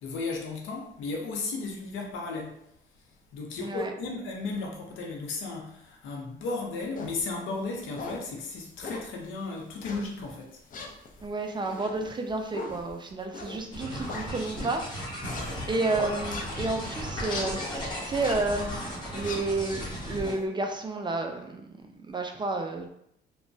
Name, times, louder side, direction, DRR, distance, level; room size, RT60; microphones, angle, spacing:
voice 1, 0.0-2.6 3.3-10.6 11.2-11.3 15.2-15.7, left 3 dB, 80° left, 0 dB, 0.7 m, -35 dB
voice 2, 3.6-3.9 11.2-14.9 15.7-18.8 19.1-21.6 22.1-22.9, right 3 dB, 25° right, 3 dB, 0.3 m, -31 dB
sound 1, 6.9-7.2 7.7-8.3 8.8-9.2 9.8-10.3 10.7-14.7 15.2-16.8 17.2-17.6 18.0-18.5 18.9-20.4, left 3 dB, 45° left, 0.5 m, -40 dB
sound 2, 13.7-20.3, equal, 25° left, 1.0 m, -35 dB
2.9 x 2.2 x 2.6 m, 0.74 s
cardioid pair, 90°, 20 cm